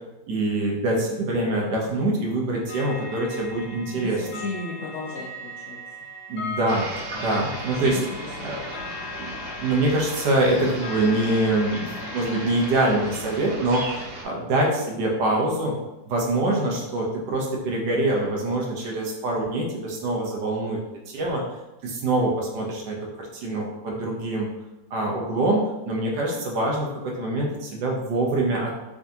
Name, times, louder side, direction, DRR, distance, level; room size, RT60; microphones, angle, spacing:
voice 1, 0.3-4.4 6.3-6.9 7.1-8.0 8.4-8.6 9.2-15.8 16.1-20.8 21.1-21.4 21.8-24.5 24.9-28.7, right 2 dB, 70° right, -2 dB, 1.3 m, -25 dB
sound 1, 2.7-12.8, left 3 dB, 45° left, 1.1 m, -39 dB
voice 2, 3.9-5.8 7.3-8.7, left 2 dB, 70° left, -5 dB, 0.7 m, -36 dB
sound 2, 6.7-14.2, right 1 dB, 90° right, 1.7 m, -36 dB
3.7 x 3.4 x 2.7 m, 0.98 s
omnidirectional pair, 2.0 m